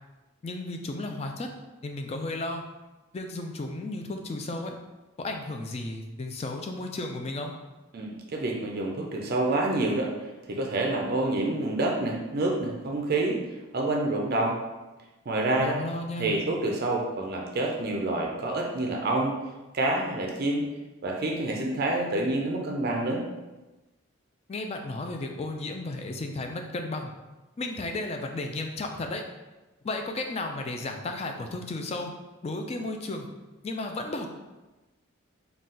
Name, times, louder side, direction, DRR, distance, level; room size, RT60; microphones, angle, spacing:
voice 1, 0.4-1.5 1.8-2.6 3.1-4.7 5.2-7.5 15.6-16.4 24.5-27.1 27.6-29.2 29.8-32.1 32.4-33.3 33.6-34.3, left 2 dB, 30° left, 4 dB, 0.3 m, -33 dB
voice 2, 7.9-10.1 10.5-13.4 13.7-14.6 15.3-15.8 16.2-19.4 19.7-20.6 21.0-23.2, right 2 dB, 45° right, 0 dB, 0.4 m, -27 dB
4.0 x 2.3 x 3.7 m, 1.1 s
head